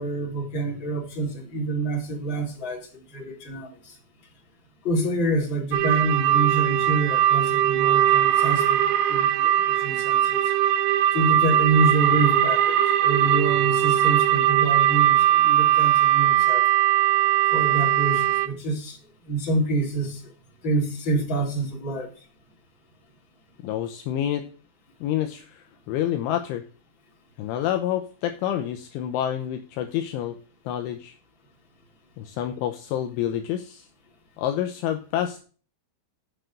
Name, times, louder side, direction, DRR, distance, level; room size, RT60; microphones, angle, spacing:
voice 1, 0.0-3.9 4.8-10.5 11.1-16.7 17.5-19.0 19.3-20.3 20.6-22.1, right 2 dB, 25° left, 3.6 m, -27 dB
sound 1, 5.7-18.5, right 11 dB, 80° right, 3.4 m, -20 dB
voice 2, 23.6-24.5 25.0-26.6 27.4-30.4 30.7-31.1 32.2-33.9 34.4-35.4, left 11 dB, 80° left, 3.1 m, -28 dB
7.9 x 7.5 x 6.4 m
omnidirectional pair, 5.9 m